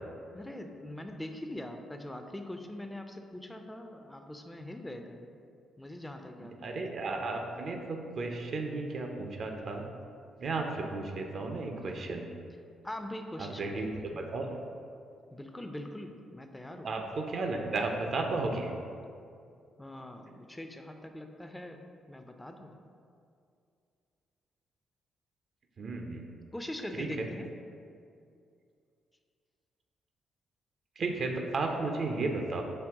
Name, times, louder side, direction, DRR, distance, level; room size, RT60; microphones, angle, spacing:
voice 1, 0.3-5.3 5.8-6.7 11.9-12.2 12.8-14.3 15.3-16.9 19.8-22.8 26.5-27.5, left 1 dB, 15° left, 5 dB, 0.4 m, -42 dB
voice 2, 6.6-9.8 10.4-12.3 13.4-14.6 16.8-18.7 25.8-26.3 26.9-27.3 31.0-32.6, right 3 dB, 55° right, 3 dB, 0.4 m, -34 dB
5.4 x 2.1 x 3.5 m, 2.4 s
hypercardioid pair, 45°, 0 cm